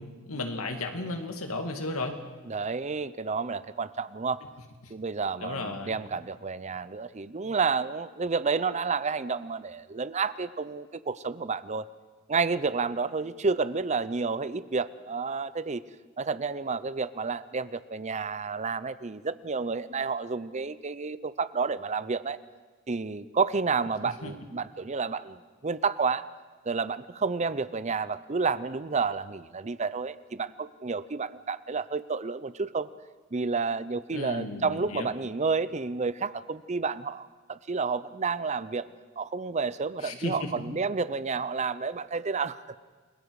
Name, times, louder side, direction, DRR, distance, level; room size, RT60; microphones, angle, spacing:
voice 1, 0.0-2.2 4.8-4.9 5.4-6.0 24.0-24.3 34.1-35.1 40.0-40.8, left 2 dB, 85° left, 5 dB, 2.4 m, -34 dB
voice 2, 2.5-4.4 4.9-11.9 12.3-15.8 16.2-22.4 22.9-26.2 26.7-32.9 33.3-38.9 39.2-42.6, right 4 dB, 30° right, 15 dB, 0.6 m, -30 dB
29.5 x 21.5 x 4.8 m, 1.4 s
head